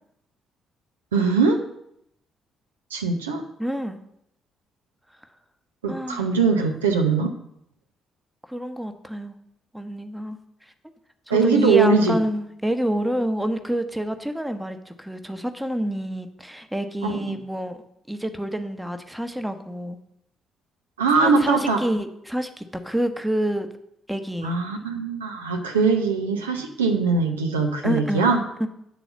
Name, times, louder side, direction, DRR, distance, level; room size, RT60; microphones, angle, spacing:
voice 1, 1.1-1.6 2.9-3.4 5.8-7.3 11.3-12.1 17.0-17.4 21.0-21.8 24.4-28.4, right 4 dB, 80° right, 3 dB, 0.7 m, -21 dB
voice 2, 3.6-4.0 5.9-6.3 8.5-9.4 9.7-10.7 11.3-17.8 18.1-20.0 21.2-23.7 24.1-24.6 27.8-28.7, right 1 dB, 5° right, 8 dB, 0.9 m, -28 dB
8.6 x 4.0 x 7.1 m, 0.76 s
figure-of-eight pair, 45°, 0 cm